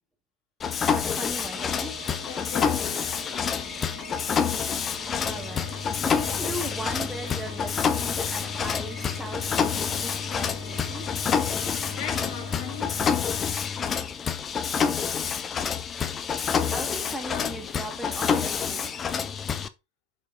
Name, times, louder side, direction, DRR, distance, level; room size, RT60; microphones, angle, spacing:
Mechanisms, 0.6-19.7, left 7 dB, 20° left, 0.8 m, -28 dB
voice 1, 0.9-2.0 4.8-11.1 16.7-19.1, right 1 dB, 5° right, 2.2 m, -38 dB
sound 1, 1.0-13.0, right 9 dB, 55° right, 1.1 m, -46 dB
voice 2, 2.2-3.7 11.9-13.0 17.1-17.7, left 9 dB, 45° left, 2.1 m, -41 dB
7.9 x 5.4 x 4.0 m
figure-of-eight pair, 90°, 0 cm